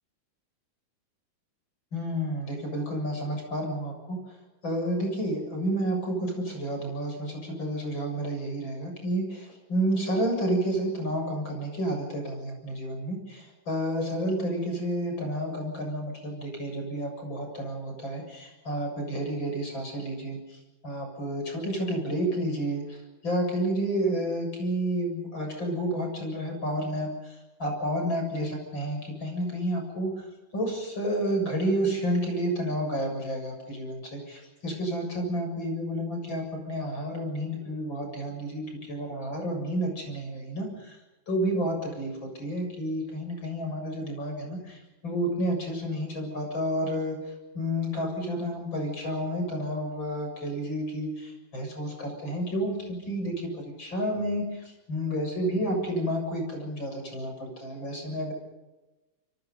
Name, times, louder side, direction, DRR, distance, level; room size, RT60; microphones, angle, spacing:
voice 1, 1.9-4.2 4.6-23.0 23.2-30.2 30.5-41.0 41.3-47.2 47.5-58.3, right 1 dB, 35° left, 3 dB, 7.9 m, -30 dB
27.0 x 25.5 x 5.5 m, 1.1 s
omnidirectional pair, 3.5 m